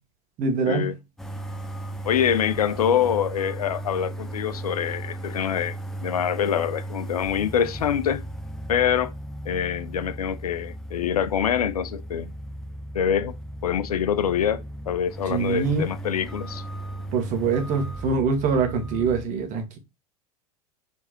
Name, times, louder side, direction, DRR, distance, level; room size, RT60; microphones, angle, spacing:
voice 1, 0.4-0.9 15.3-15.9 17.1-19.8, right 5 dB, 40° right, 1.4 m, -24 dB
sound 1, 1.2-19.3, right 1 dB, ahead, 0.6 m, -36 dB
voice 2, 2.0-5.8 6.0-8.2 8.7-9.1 9.5-12.3 12.9-13.3 13.6-16.6, left 9 dB, 80° left, 0.5 m, -25 dB
4.6 x 3.4 x 3.0 m
hypercardioid pair, 90°, 19 cm